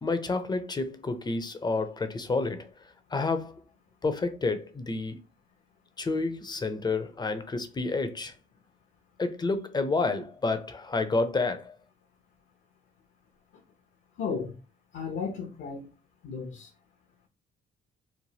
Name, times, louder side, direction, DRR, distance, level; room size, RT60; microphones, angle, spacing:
voice 1, 0.0-2.7 3.1-3.6 4.0-5.2 6.0-8.3 9.2-11.7, left 3 dB, 20° left, 0.5 m, -29 dB
voice 2, 14.2-14.6 14.9-15.9 16.2-16.7, left 5 dB, 70° left, 0.7 m, -34 dB
3.1 x 2.1 x 2.7 m
cardioid pair, 90°, 20 cm